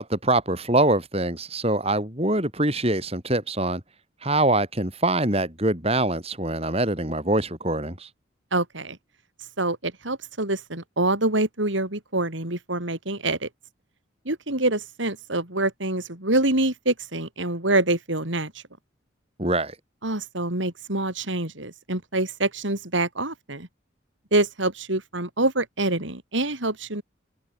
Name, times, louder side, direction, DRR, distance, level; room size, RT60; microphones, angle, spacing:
voice 1, 0.0-3.8 4.2-8.1 19.4-19.7, right 2 dB, 30° right, 5.9 m, -24 dB
voice 2, 8.5-9.0 9.6-13.5 14.2-18.6 20.0-23.7 24.3-27.0, right 2 dB, 70° right, 4.6 m, -26 dB
head